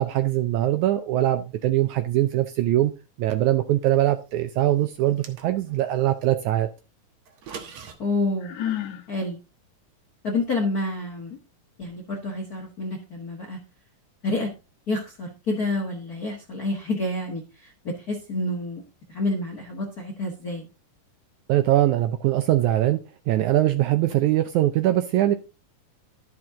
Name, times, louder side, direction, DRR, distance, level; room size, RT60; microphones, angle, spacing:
voice 1, 0.0-2.9 3.2-6.7 21.5-23.0 23.3-25.3, right 14 dB, 75° right, 1.8 m, -22 dB
sound 1, 5.0-5.9 7.3-8.0, right 6 dB, 60° right, 2.2 m, -41 dB
voice 2, 8.0-8.5 9.1-9.4 10.2-11.4 11.8-13.6 14.2-14.5 14.9-18.8 19.1-20.7, left 2 dB, 45° left, 1.2 m, -28 dB
Sigh, 8.4-9.1, left 11 dB, 70° left, 2.2 m, -30 dB
12.5 x 6.0 x 3.7 m
omnidirectional pair, 4.0 m